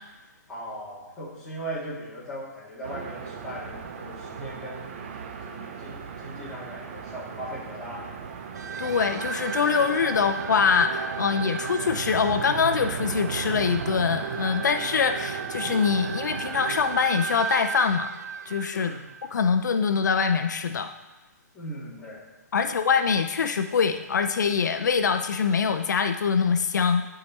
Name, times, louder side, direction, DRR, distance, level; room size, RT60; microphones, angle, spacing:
voice 1, 0.5-4.9 5.4-8.2 18.7-19.0 21.5-22.3 22.5-22.7, equal, 10° left, -10 dB, 2.9 m, -38 dB
sound 1, 2.8-17.0, right 6 dB, 40° right, 0.8 m, -39 dB
sound 2, 8.5-19.8, right 7 dB, 80° right, 0.5 m, -34 dB
voice 2, 8.8-18.1 18.5-18.9 19.3-20.9 22.5-27.1, left 6 dB, 85° left, 8 dB, 0.5 m, -24 dB
10.5 x 4.9 x 4.2 m, 1.1 s
hypercardioid pair, 165°, 9 cm